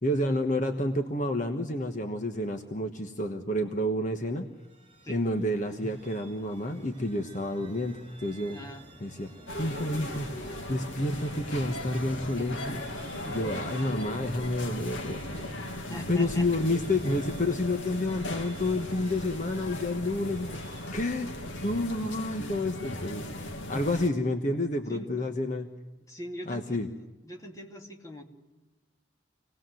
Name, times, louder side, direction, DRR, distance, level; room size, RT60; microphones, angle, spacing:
voice 1, 0.0-4.5 5.1-8.7 9.0-9.3 9.6-10.3 10.7-12.9 13.3-15.4 16.1-21.3 21.6-25.7 26.5-26.9, left 1 dB, 40° left, 5 dB, 1.3 m, -30 dB
sound 1, 4.4-22.6, right 2 dB, 30° right, 5.4 m, -51 dB
voice 2, 8.5-8.8 13.1-13.6 15.8-16.5 23.7-23.9 24.9-25.3 26.1-26.9 27.2-28.2, equal, 15° left, 2 dB, 2.4 m, -42 dB
sound 2, 9.5-24.1, left 1 dB, 85° left, 2.2 m, -38 dB
27.0 x 19.0 x 7.8 m, 1.2 s
head